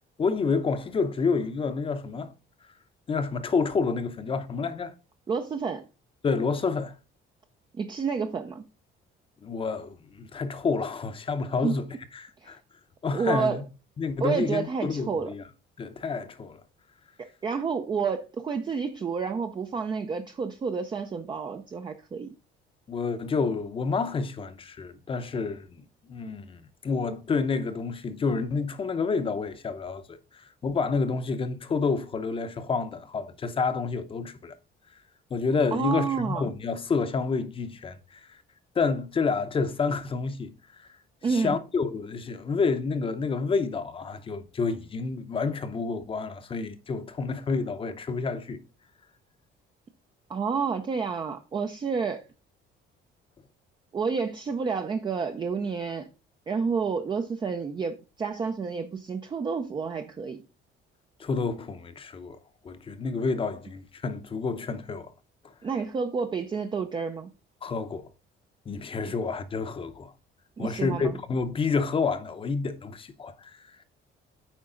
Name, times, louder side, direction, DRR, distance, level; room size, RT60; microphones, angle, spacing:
voice 1, 0.2-2.3 3.1-4.9 6.2-7.0 9.4-11.9 12.1-12.6 13.0-13.6 14.0-15.4 15.8-16.6 22.9-25.8 26.1-34.5 35.3-38.4 38.7-40.9 41.3-48.6 61.2-62.4 62.6-65.1 67.6-68.1 68.7-70.1 70.6-73.8, left 4 dB, 25° left, 0.7 m, -29 dB
voice 2, 5.3-5.8 7.7-8.7 11.6-11.7 12.4-12.5 13.1-13.6 14.2-15.3 17.2-22.3 35.7-36.5 41.2-41.6 50.3-52.2 53.9-56.1 56.5-60.4 65.6-67.3 70.6-71.1, right 5 dB, 25° right, 0.5 m, -29 dB
8.8 x 4.7 x 3.8 m
cardioid pair, 160°, 20 cm